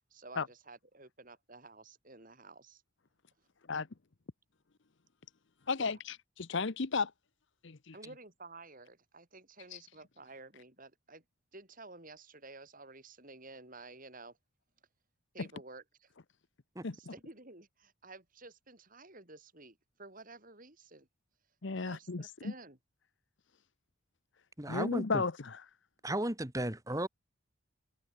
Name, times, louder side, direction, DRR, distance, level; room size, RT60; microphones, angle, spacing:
voice 1, 0.0-2.8 5.8-6.0 7.9-11.2 11.5-14.4 15.3-16.1 16.9-21.1 21.8-22.8, right 3 dB, 40° right, 4.8 m, -52 dB
voice 2, 5.7-7.1 7.6-7.9 9.7-9.8 16.8-16.9 21.6-22.5 24.7-25.6, left 4 dB, 55° left, 0.8 m, -34 dB
voice 3, 24.6-25.2 26.0-27.1, right 1 dB, 15° right, 2.0 m, -34 dB
head